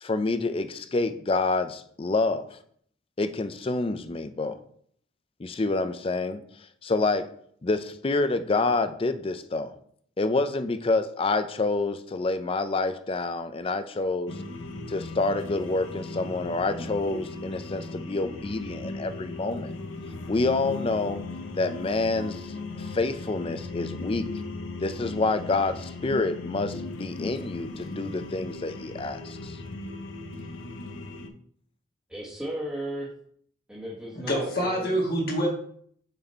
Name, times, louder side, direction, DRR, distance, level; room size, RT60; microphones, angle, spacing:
voice 1, 0.0-2.6 3.2-4.6 5.4-6.4 6.8-7.3 7.6-9.7 10.2-14.3 14.9-19.7 20.3-21.2 21.6-24.3 24.8-29.6, left 3 dB, 30° left, 11 dB, 0.4 m, -27 dB
sound 1, 14.3-31.3, left 2 dB, 85° left, 0.7 m, -37 dB
voice 2, 32.1-33.1 33.7-35.0, right 1 dB, 5° right, -6 dB, 1.3 m, -35 dB
voice 3, 34.1-35.5, equal, 50° left, -2 dB, 1.5 m, -26 dB
6.7 x 4.2 x 4.3 m, 0.63 s
head